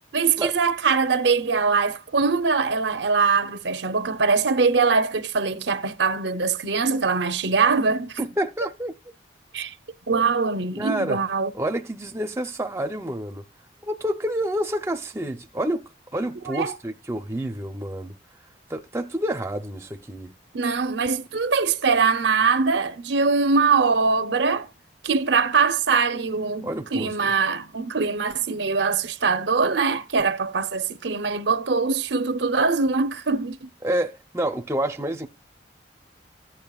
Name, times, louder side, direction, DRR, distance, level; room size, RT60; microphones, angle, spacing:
voice 1, 0.1-8.2 9.5-9.7 10.1-11.5 16.5-16.8 20.5-24.7 25.0-33.7, right 4 dB, 70° right, 0.7 m, -22 dB
voice 2, 8.2-8.9 10.8-11.2 11.5-13.4 13.8-15.8 16.1-18.2 18.7-20.3 26.6-27.1 33.8-35.3, right 1 dB, 15° right, 0.7 m, -28 dB
14.5 x 8.9 x 2.4 m
head